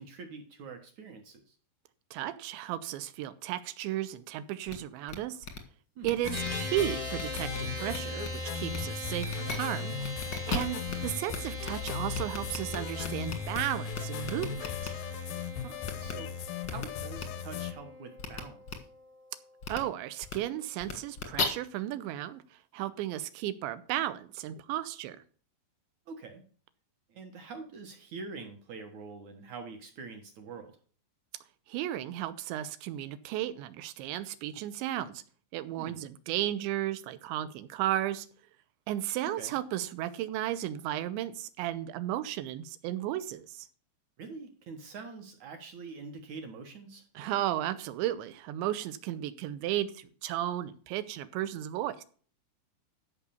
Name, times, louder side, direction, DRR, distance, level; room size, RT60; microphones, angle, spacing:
voice 1, 0.0-1.6 6.0-6.2 10.4-10.7 15.5-18.9 26.1-26.4 27.1-30.7 35.8-36.0 39.2-39.5 44.2-47.0, right 4 dB, 65° right, 1.8 m, -45 dB
voice 2, 2.1-5.5 6.0-14.9 19.7-22.4 22.7-25.2 31.7-35.2 35.5-38.3 38.9-43.7 47.2-52.0, right 13 dB, 85° right, 3.1 m, -34 dB
sound 1, 4.7-4.8 5.1-5.2 5.4-5.6 6.0-6.8 7.1-7.6 7.9-8.3 8.7-8.8 9.2-9.6 10.0-10.9 11.3-11.4 11.6-13.6 13.9-14.9 15.8-16.1 16.6-16.8 17.2-17.3 18.2-18.4 18.7-18.8 19.6-19.8 20.2-20.3 20.8-21.4, left 5 dB, 65° left, 1.0 m, -36 dB
sound 2, 6.2-17.7, left 7 dB, 85° left, 1.9 m, -37 dB
sound 3, 6.3-19.8, equal, 25° right, 0.8 m, -42 dB
13.5 x 5.5 x 7.0 m
omnidirectional pair, 5.1 m